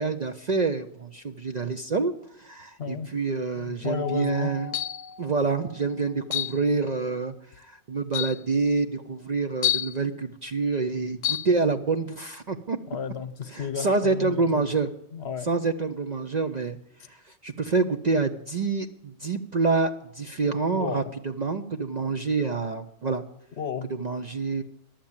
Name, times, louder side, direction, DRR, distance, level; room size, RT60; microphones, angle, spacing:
voice 1, 0.0-4.8 5.2-12.8 13.5-14.9 15.4-16.8 17.1-23.2 23.9-24.6, right 4 dB, 45° right, 7 dB, 0.6 m, -27 dB
voice 2, 3.5-4.5 12.9-14.6 15.1-15.5 20.7-21.1 23.6-23.9, left 6 dB, 60° left, 12 dB, 1.1 m, -32 dB
Mallet percussion, 3.9-6.4, left 4 dB, 65° right, 3.3 m, -42 dB
sound 1, 4.7-5.1 6.3-6.6 7.5-7.6 8.1-8.4 9.6-10.0 11.2-11.5, left 13 dB, 80° left, 1.0 m, -27 dB
12.0 x 7.4 x 8.6 m, 0.82 s
omnidirectional pair, 1.3 m